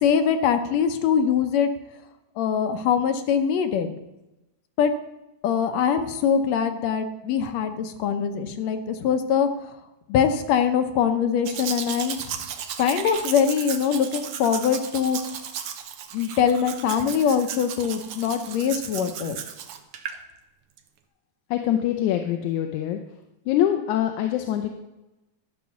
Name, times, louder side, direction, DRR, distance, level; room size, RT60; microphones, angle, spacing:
voice 1, 0.0-1.7 2.4-3.9 4.8-4.9 5.4-9.7 10.1-12.2 12.8-15.2 16.1-19.4, left 7 dB, 70° left, 8 dB, 1.9 m, -23 dB
Domestic sounds home sounds, 11.5-20.2 20.8-20.9, right 8 dB, 70° right, 1.5 m, -35 dB
voice 2, 21.5-23.0 23.5-24.7, left 11 dB, 90° left, 6 dB, 2.1 m, -24 dB
12.5 x 5.3 x 7.1 m, 0.98 s
omnidirectional pair, 3.3 m